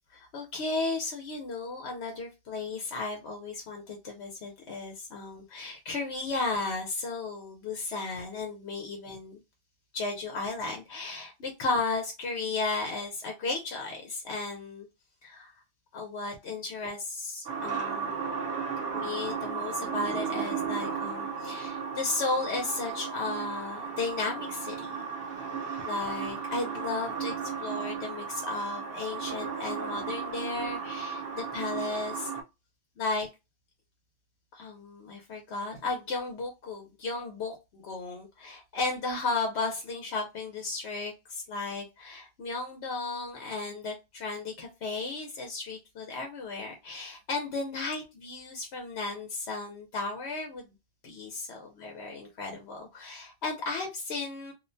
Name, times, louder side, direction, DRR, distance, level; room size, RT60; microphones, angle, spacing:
voice 1, 0.1-9.4 9.9-14.9 15.2-15.5 15.9-18.2 18.9-25.1 25.9-27.3 27.6-32.3 33.0-33.3 34.5-50.7 51.0-54.5, left 3 dB, 90° left, 2 dB, 1.0 m, -34 dB
sound 1, 17.5-32.4, right 6 dB, 70° right, 0.8 m, -35 dB
2.5 x 2.2 x 2.5 m, 0.24 s
omnidirectional pair, 1.1 m